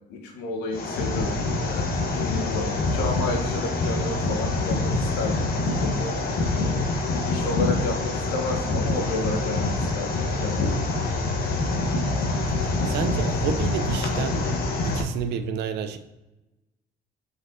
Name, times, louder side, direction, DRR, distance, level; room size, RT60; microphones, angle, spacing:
voice 1, 0.1-6.3 7.3-11.1, left 3 dB, 85° left, 2 dB, 1.6 m, -31 dB
sound 1, 0.7-15.0, left 2 dB, 60° left, 1.5 m, -25 dB
voice 2, 12.6-14.4 14.8-16.0, right 8 dB, 85° right, 9 dB, 0.7 m, -30 dB
6.3 x 5.1 x 4.0 m, 1.0 s
cardioid pair, 110°, 17 cm